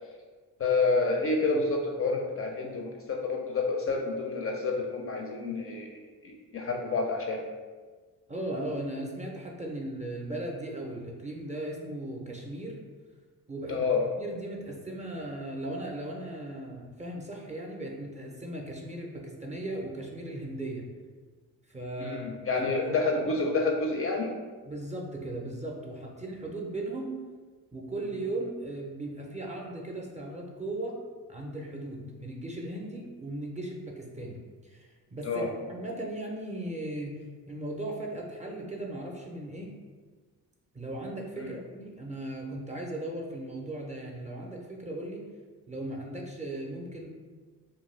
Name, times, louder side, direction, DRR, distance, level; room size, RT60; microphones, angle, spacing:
voice 1, 0.6-7.5 13.7-14.0 22.0-24.3 35.2-35.5 41.4-41.5, left 3 dB, 35° left, 1 dB, 0.4 m, -29 dB
voice 2, 8.3-12.8 13.5-13.8 14.2-20.9 21.7-22.2 22.7-22.9 23.2-23.3 24.6-27.2 27.7-31.0 31.3-37.2 37.5-39.8 40.7-45.3 45.7-47.1, right 1 dB, 20° right, -1 dB, 0.5 m, -37 dB
2.3 x 2.2 x 3.1 m, 1.4 s
supercardioid pair, 55°, 41 cm